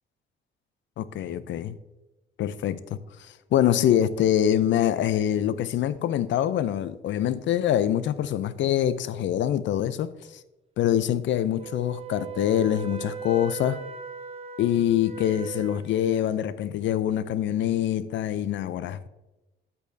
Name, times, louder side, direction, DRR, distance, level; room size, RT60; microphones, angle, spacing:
voice 1, 1.0-1.7 2.4-2.8 3.5-10.1 10.8-13.8 14.6-19.1, left 11 dB, 70° left, 0.5 m, -24 dB
Wind instrument woodwind instrument, 11.6-16.3, right 7 dB, 30° right, 0.9 m, -39 dB
8.9 x 8.1 x 2.7 m
cardioid pair, 90°, 20 cm